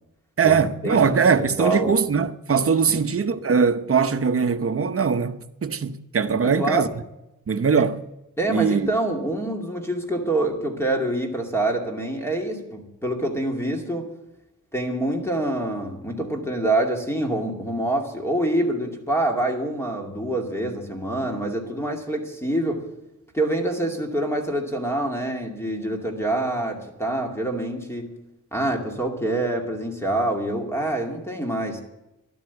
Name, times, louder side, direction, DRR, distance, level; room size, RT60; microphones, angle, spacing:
voice 1, 0.4-6.9 7.5-8.0 8.5-8.9, right 6 dB, 40° right, 0.9 m, -21 dB
voice 2, 1.6-1.9 2.9-3.0 6.4-6.9 8.4-14.1 14.7-22.9 23.3-28.1 28.5-31.8, right 1 dB, 10° left, 2.5 m, -26 dB
12.5 x 12.0 x 8.2 m
wide cardioid pair, 130°, 33 cm